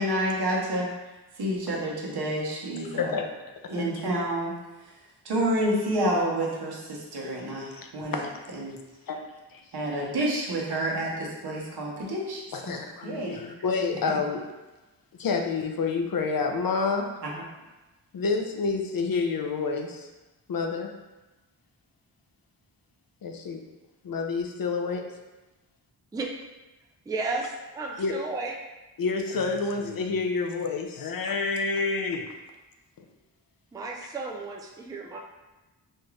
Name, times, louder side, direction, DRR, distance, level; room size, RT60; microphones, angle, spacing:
voice 1, 0.0-3.1 3.7-8.3 8.5-8.8 9.7-12.8 13.0-13.4 14.1-14.2 17.2-17.4, right 1 dB, 70° right, -3 dB, 1.0 m, -29 dB
voice 2, 12.5-14.4 15.2-17.1 18.1-20.1 20.5-20.9 23.2-23.6 24.0-25.0 28.0-28.1 29.0-32.3, left 4 dB, 55° left, 3 dB, 0.5 m, -28 dB
voice 3, 27.1-28.5 33.7-35.2, right 3 dB, 10° right, 0 dB, 0.3 m, -33 dB
4.3 x 2.4 x 3.2 m, 1.1 s
wide cardioid pair, 95°, 41 cm